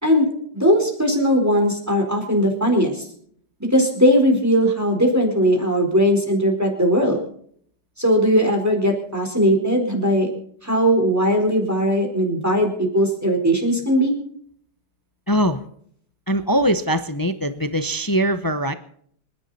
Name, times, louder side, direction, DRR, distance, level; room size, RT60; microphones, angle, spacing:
voice 1, 0.0-3.1 3.7-7.2 8.0-10.3 10.6-14.1, equal, 10° right, 1 dB, 4.2 m, -19 dB
voice 2, 15.3-15.6 16.3-18.7, equal, 30° left, 10 dB, 0.4 m, -21 dB
26.0 x 11.0 x 4.2 m, 0.62 s
omnidirectional pair, 1.9 m